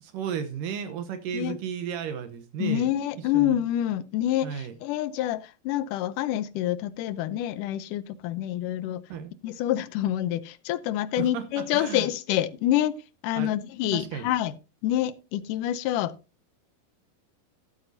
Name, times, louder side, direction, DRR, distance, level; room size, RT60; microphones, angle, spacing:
voice 1, 0.0-2.9 3.3-3.6 4.4-4.7 9.1-9.3 11.2-12.1 13.4-13.5 13.9-14.3, right 8 dB, 75° right, 2.3 m, -33 dB
voice 2, 2.6-9.0 9.4-13.0 13.2-14.5 14.8-16.2, left 12 dB, 75° left, 2.0 m, -27 dB
12.5 x 12.0 x 2.6 m
omnidirectional pair, 4.3 m